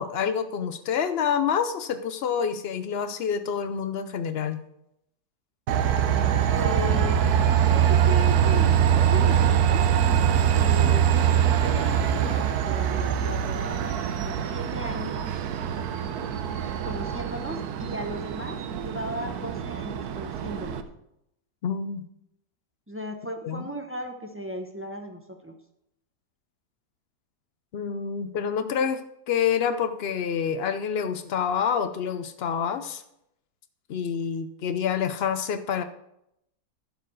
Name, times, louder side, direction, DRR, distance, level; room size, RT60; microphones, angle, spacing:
voice 1, 0.0-4.6 21.6-22.0 23.4-23.7 27.7-29.0 29.3-33.0 33.9-35.8, left 7 dB, 80° left, 10 dB, 0.5 m, -27 dB
Train, 5.7-20.8, right 9 dB, 70° right, 1.2 m, -23 dB
voice 2, 6.5-7.2 7.7-9.8 10.4-11.1 11.6-15.3 16.8-20.9 22.9-25.5, left 1 dB, 15° right, 4 dB, 0.4 m, -36 dB
11.5 x 4.9 x 6.2 m, 0.80 s
omnidirectional pair, 1.8 m